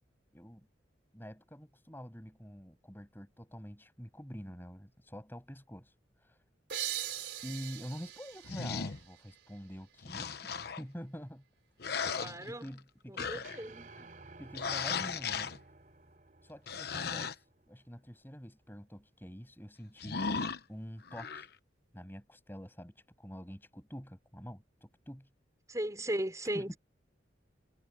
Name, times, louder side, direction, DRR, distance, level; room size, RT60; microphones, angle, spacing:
voice 1, 0.3-0.7 1.1-5.9 6.2-6.4 7.4-10.5 10.8-11.4 12.5-13.5 14.0-14.1 14.4-15.6 16.4-17.4 17.7-20.2 20.7-21.5 21.9-25.3 26.5-26.8, equal, 10° left, 7.4 m, -47 dB
sound 1, 6.7-10.1, right 12 dB, 60° right, 5.1 m, -41 dB
sound 2, 8.4-9.0 10.0-10.8 11.8-12.8 13.2-13.6 14.5-15.6 16.7-17.3 20.0-20.6 21.1-21.5, left 5 dB, 55° left, 1.0 m, -36 dB
voice 2, 12.1-12.7 13.1-13.9 25.7-26.8, right 1 dB, 15° right, 4.9 m, -37 dB
sound 3, 13.4-17.8, right 3 dB, 45° right, 3.2 m, -55 dB
head